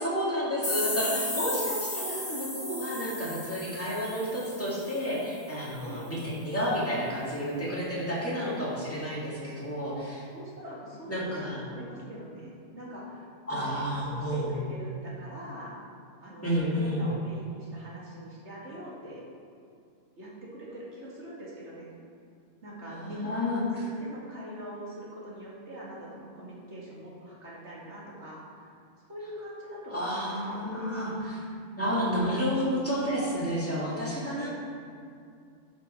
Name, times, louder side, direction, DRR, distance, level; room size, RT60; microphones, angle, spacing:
voice 1, 0.0-10.3 11.1-11.6 13.5-14.5 16.4-17.1 22.9-23.9 29.9-31.4 31.8-34.5, equal, 10° left, -7 dB, 2.2 m, -30 dB
sound 1, 0.6-5.3, left 2 dB, 50° left, 2.4 m, -35 dB
voice 2, 0.9-1.4 5.9-6.1 10.3-15.8 16.2-19.2 20.2-21.9 22.6-28.7 29.1-31.0 34.4-34.5, right 1 dB, 60° right, -6 dB, 2.3 m, -43 dB
11.0 x 6.0 x 4.4 m, 2.4 s
omnidirectional pair, 1.3 m